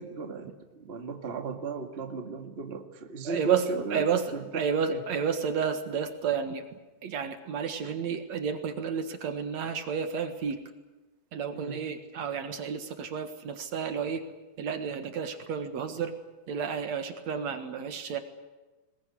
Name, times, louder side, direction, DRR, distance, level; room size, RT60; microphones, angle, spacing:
voice 1, 0.0-4.5 4.9-5.0 7.8-8.0 11.5-11.9, right 4 dB, 25° right, 5 dB, 1.4 m, -37 dB
voice 2, 3.2-6.6 7.0-10.6 11.3-14.2 14.6-16.2 16.5-18.2, right 6 dB, 60° right, 8 dB, 2.7 m, -31 dB
21.0 x 21.0 x 9.7 m, 1.2 s
omnidirectional pair, 3.6 m